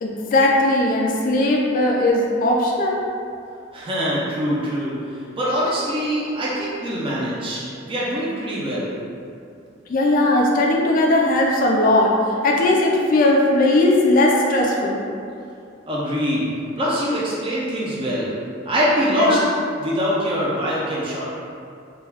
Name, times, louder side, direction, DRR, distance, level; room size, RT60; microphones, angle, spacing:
voice 1, 0.0-3.0 9.9-12.1 12.4-15.0 19.1-19.4, left 2 dB, 45° left, -1 dB, 0.3 m, -18 dB
voice 2, 3.7-4.9 5.3-8.9 15.9-16.5 16.8-18.3 18.7-19.4 19.8-21.3, equal, 30° right, -7 dB, 0.5 m, -23 dB
2.3 x 2.2 x 3.3 m, 2.4 s
head